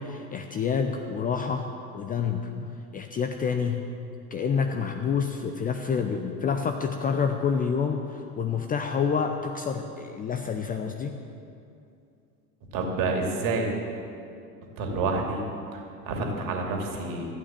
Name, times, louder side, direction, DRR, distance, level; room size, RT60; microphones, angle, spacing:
voice 1, 0.0-1.7 1.9-3.8 4.3-11.1, left 6 dB, 20° left, 5 dB, 0.6 m, -28 dB
voice 2, 12.7-13.7 14.8-15.4 15.7-17.3, right 3 dB, 45° right, 1 dB, 2.5 m, -28 dB
13.5 x 8.8 x 7.3 m, 2.5 s
figure-of-eight pair, 75°, 47 cm